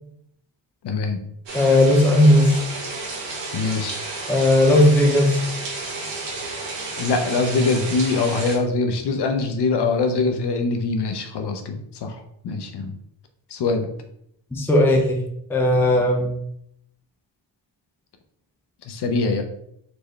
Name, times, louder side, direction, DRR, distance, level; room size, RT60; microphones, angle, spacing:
voice 1, 0.8-1.2 3.5-4.0 7.0-12.9 13.5-13.9 18.9-19.4, left 3 dB, 60° left, 6 dB, 0.6 m, -23 dB
voice 2, 1.5-2.6 4.3-5.4 14.5-15.2 15.5-16.3, left 1 dB, 5° left, 0 dB, 0.4 m, -16 dB
sound 1, 1.5-8.6, right 3 dB, 65° right, 1.2 m, -32 dB
4.4 x 3.1 x 3.2 m, 0.73 s
wide cardioid pair, 180°, 47 cm